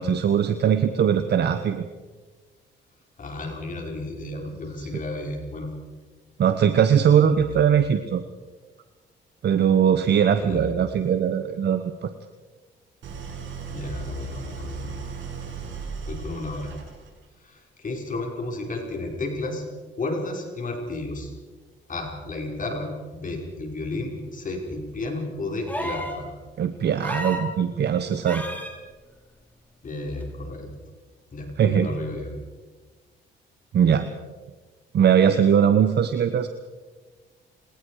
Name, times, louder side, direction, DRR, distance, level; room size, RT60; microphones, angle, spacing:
voice 1, 0.0-1.8 6.4-8.2 9.4-12.1 26.6-28.4 31.6-31.9 33.7-34.1 34.9-36.5, right 8 dB, 60° right, 9 dB, 1.2 m, -20 dB
voice 2, 3.2-5.7 7.4-7.6 10.4-10.7 13.7-15.0 16.1-16.7 17.4-19.6 20.0-21.3 21.9-26.3 29.8-30.7 31.3-32.3, left 2 dB, 40° left, 1 dB, 5.1 m, -32 dB
Idling, 13.0-17.2, right 6 dB, 75° right, 6.9 m, -36 dB
sound 1, 25.7-26.2 27.0-27.5 28.2-28.7 30.2-30.3, equal, 10° left, 5.4 m, -31 dB
29.5 x 19.0 x 4.9 m, 1.3 s
cardioid pair, 90°, 20 cm